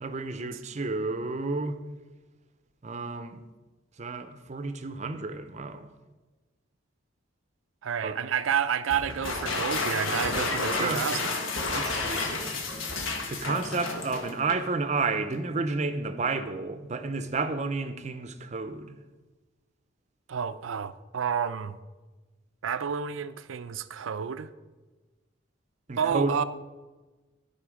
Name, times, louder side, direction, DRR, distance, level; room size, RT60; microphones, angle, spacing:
voice 1, 0.0-1.8 2.8-3.4 4.0-5.9 8.0-8.2 10.6-11.1 11.7-12.6 13.3-19.0 25.9-26.4, right 3 dB, 35° right, 0.6 m, -31 dB
voice 2, 7.8-11.3 20.3-21.8 22.6-24.5 26.0-26.4, right 7 dB, 85° right, 0.4 m, -30 dB
sound 1, 8.9-14.2, equal, 55° left, 2.3 m, -45 dB
sound 2, 9.1-14.7, left 3 dB, 85° left, 1.2 m, -31 dB
13.0 x 4.3 x 5.0 m
head